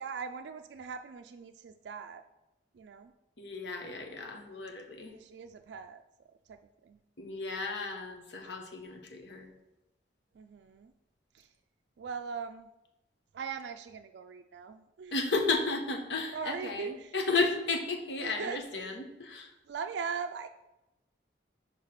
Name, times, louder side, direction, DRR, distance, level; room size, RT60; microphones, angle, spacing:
voice 1, 0.0-2.2 2.7-3.1 5.1-6.0 6.5-7.0 10.3-10.9 11.3-11.5 12.0-12.7 13.3-15.2 16.3-17.2 18.2-18.9 19.6-20.5, right 6 dB, 75° right, 7 dB, 0.3 m, -40 dB
voice 2, 3.4-5.1 7.2-9.5 15.1-19.5, left 3 dB, 75° left, 4 dB, 1.0 m, -33 dB
5.0 x 4.8 x 5.8 m, 0.97 s
head